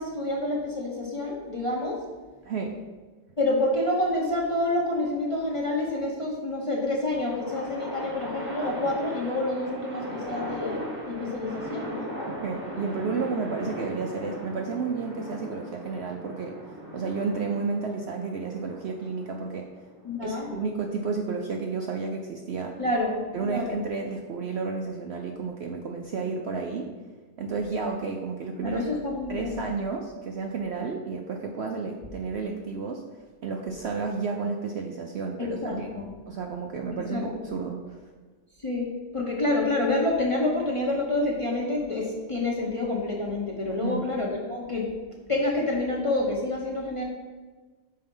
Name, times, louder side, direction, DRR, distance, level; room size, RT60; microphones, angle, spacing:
voice 1, 0.0-2.0 3.4-10.8 11.1-12.1 20.0-20.5 22.8-23.8 28.6-29.6 35.4-36.1 37.1-37.2 38.6-38.9 39.1-44.9 45.3-47.0, left 2 dB, 30° left, -2 dB, 0.7 m, -28 dB
voice 2, 2.4-2.8 12.3-16.6 16.9-19.7 20.2-22.8 23.3-26.9 27.4-28.8 29.3-33.0 33.4-38.0 43.7-44.0, right 4 dB, 65° right, 2 dB, 0.7 m, -31 dB
sound 1, 6.9-20.3, equal, 10° right, 1.0 m, -38 dB
5.6 x 4.3 x 5.3 m, 1.4 s
omnidirectional pair, 1.5 m